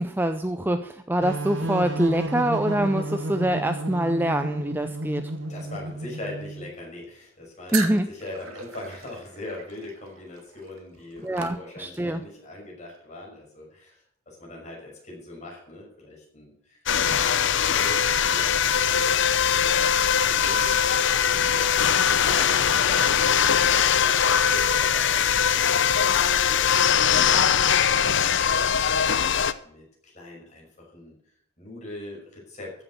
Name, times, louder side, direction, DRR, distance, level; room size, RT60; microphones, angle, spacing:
voice 1, 0.0-5.3 7.7-8.1 11.2-12.2, right 1 dB, 10° right, 8 dB, 0.5 m, -25 dB
sound 1, 1.2-6.7, right 1 dB, 55° right, 1.2 m, -32 dB
voice 2, 5.5-17.4 17.7-19.9 20.2-29.1 29.6-31.2 31.6-32.7, left 2 dB, 35° left, -2 dB, 6.0 m, -42 dB
sound 2, 7.7-12.2, right 6 dB, 75° right, 2.2 m, -37 dB
sound 3, 16.9-29.5, left 8 dB, 55° left, 0.7 m, -21 dB
15.0 x 7.7 x 6.2 m, 0.66 s
head